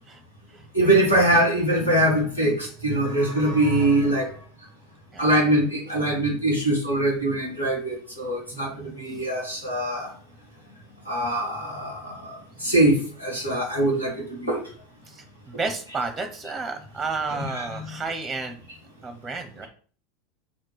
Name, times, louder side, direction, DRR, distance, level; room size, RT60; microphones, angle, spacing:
voice 1, 0.7-4.3 5.2-10.1 11.0-14.6 17.5-17.9, right 1 dB, 85° left, -3 dB, 3.1 m, -23 dB
voice 2, 8.5-9.0 15.1-18.6 19.0-19.7, right 4 dB, 10° right, 7 dB, 1.1 m, -32 dB
6.1 x 4.3 x 6.4 m, 0.43 s
figure-of-eight pair, 80°, 0 cm